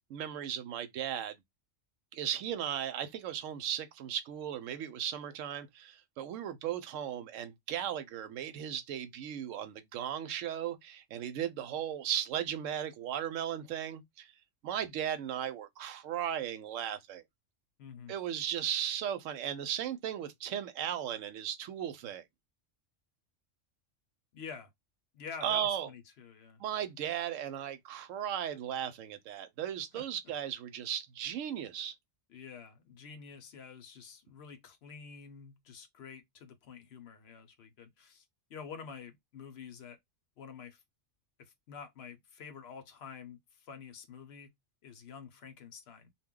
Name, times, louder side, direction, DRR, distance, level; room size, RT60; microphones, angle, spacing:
voice 1, 0.0-1.3 2.1-14.3 14.6-17.2 18.1-22.2 25.4-25.9 26.6-31.9, right 10 dB, 80° right, 0.9 m, -36 dB
voice 2, 17.8-18.1 24.3-24.7 25.1-26.6 29.9-30.3 32.3-38.2 38.5-40.0 40.4-40.8 41.4-44.5 44.8-46.1, left 6 dB, 65° left, 0.8 m, -48 dB
2.2 x 2.1 x 3.5 m
omnidirectional pair, 1.3 m